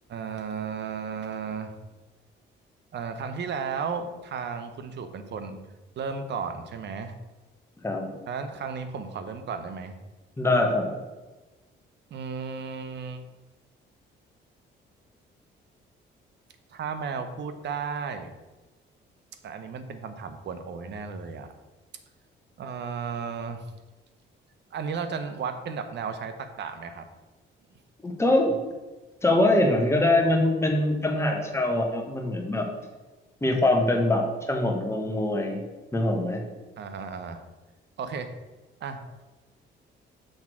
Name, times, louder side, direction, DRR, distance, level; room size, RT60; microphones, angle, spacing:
voice 1, 0.1-1.7 2.9-5.6 6.0-7.1 8.3-9.9 12.1-13.2 16.7-18.3 19.4-21.5 22.6-23.6 24.7-27.1 36.8-37.4 38.0-38.3 38.8-39.0, right 5 dB, 60° right, 9 dB, 0.8 m, -34 dB
voice 2, 7.8-8.2 10.4-10.9 28.0-28.6 29.2-32.7 33.4-35.6 35.9-36.4, left 1 dB, 15° left, 1 dB, 1.3 m, -23 dB
6.4 x 3.6 x 6.1 m, 1.2 s
cardioid pair, 90°, 20 cm